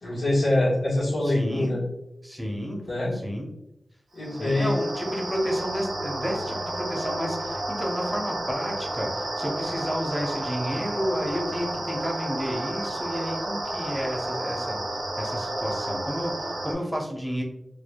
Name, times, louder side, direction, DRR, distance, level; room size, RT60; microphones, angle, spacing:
voice 1, 0.0-1.8 2.8-3.1 4.1-4.7, left 1 dB, 85° left, -7 dB, 1.3 m, -24 dB
voice 2, 1.2-1.8 2.2-2.9 3.1-3.5 4.4-14.8 15.2-17.4, equal, 5° right, 0 dB, 0.8 m, -31 dB
sound 1, 4.2-16.7, right 1 dB, 85° right, 0.8 m, -31 dB
4.6 x 2.3 x 2.2 m, 0.87 s
cardioid pair, 55°, 0 cm